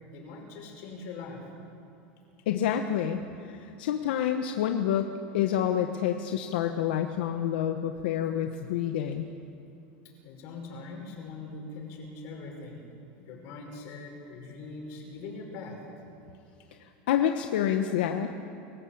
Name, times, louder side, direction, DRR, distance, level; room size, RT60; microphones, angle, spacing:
voice 1, 0.1-1.5 10.2-12.8 13.2-15.8, left 3 dB, 55° left, 1 dB, 6.0 m, -42 dB
voice 2, 2.5-9.3 16.8-18.4, left 9 dB, 90° left, 6 dB, 1.1 m, -28 dB
26.0 x 15.0 x 8.7 m, 2.8 s
supercardioid pair, 150°, 5 cm